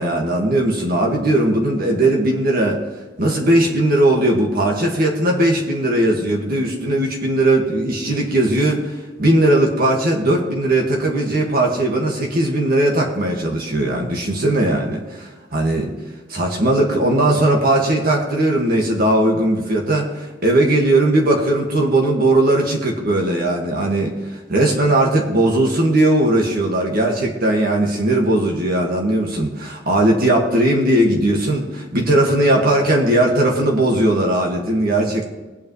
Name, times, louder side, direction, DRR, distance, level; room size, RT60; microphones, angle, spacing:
voice 1, 0.0-2.8 3.2-15.9 16.3-35.3, right 1 dB, 50° right, 0 dB, 1.8 m, -18 dB
20.0 x 8.7 x 3.2 m, 1.3 s
head